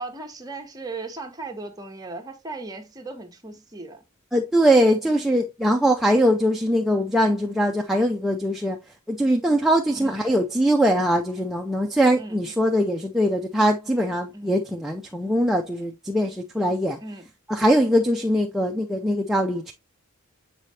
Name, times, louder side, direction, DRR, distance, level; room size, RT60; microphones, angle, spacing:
voice 1, 0.0-4.0 9.9-10.1 12.2-12.4 14.3-14.5 17.0-17.3, right 3 dB, 15° right, 1.1 m, -37 dB
voice 2, 4.3-8.8 9.1-17.0 17.5-19.7, equal, ahead, 0.5 m, -21 dB
7.5 x 4.9 x 2.8 m
head